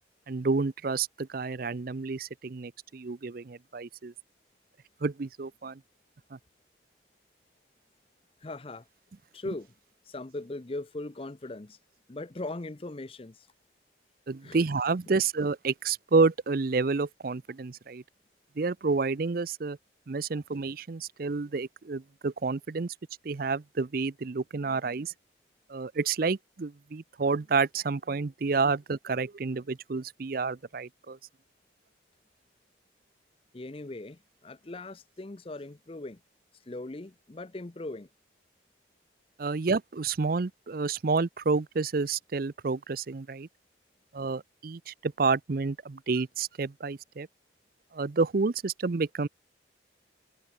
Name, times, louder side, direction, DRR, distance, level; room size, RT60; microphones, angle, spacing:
voice 1, 0.3-4.1 5.0-5.8 6.3-6.4 14.3-18.0 18.6-19.8 20.1-22.9 23.2-25.1 25.7-31.2 39.4-43.5 44.1-47.3 47.9-49.3, right 4 dB, 50° right, 0.5 m, -29 dB
voice 2, 8.4-8.9 9.3-9.7 10.0-11.8 12.1-13.5 14.4-14.6 33.5-36.2 36.7-38.1, left 2 dB, 30° left, 0.6 m, -39 dB
head